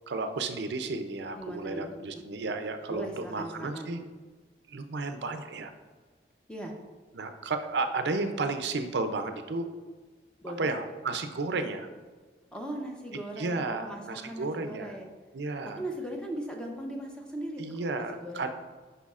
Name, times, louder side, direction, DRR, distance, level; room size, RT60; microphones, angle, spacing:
voice 1, 0.1-4.0 4.7-5.7 7.1-9.7 10.6-11.9 13.4-14.9 15.3-15.8 17.6-18.5, right 3 dB, 70° right, 7 dB, 0.5 m, -33 dB
voice 2, 1.4-2.2 2.9-4.1 6.5-6.7 10.4-10.7 12.5-15.1 15.6-18.5, right 1 dB, 5° left, 1 dB, 0.6 m, -39 dB
8.2 x 5.5 x 2.4 m, 1.4 s
head